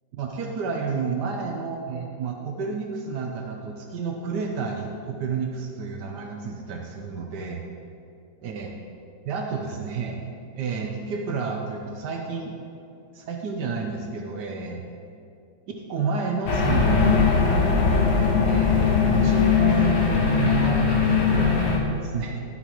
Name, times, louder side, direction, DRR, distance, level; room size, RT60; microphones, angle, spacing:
voice 1, 0.1-7.6 8.4-8.7 9.2-10.2 10.6-12.5 13.1-14.8 15.7-17.6 18.4-22.4, right 5 dB, 80° right, 1 dB, 1.3 m, -30 dB
sound 1, 16.5-21.8, left 5 dB, 70° left, 1.5 m, -20 dB
11.5 x 8.0 x 3.0 m, 2.6 s
omnidirectional pair, 1.8 m